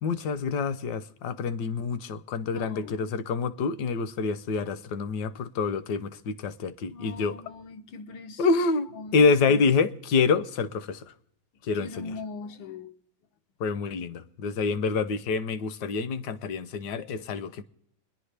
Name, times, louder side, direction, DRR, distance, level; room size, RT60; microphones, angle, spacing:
voice 1, 0.0-7.4 8.4-11.1 11.6-12.2 13.6-17.6, left 4 dB, 70° left, 1.2 m, -27 dB
voice 2, 2.5-3.1 6.9-8.4 9.0-9.2 11.8-12.9, left 4 dB, 85° left, 1.6 m, -40 dB
30.0 x 10.5 x 3.3 m
omnidirectional pair, 2.0 m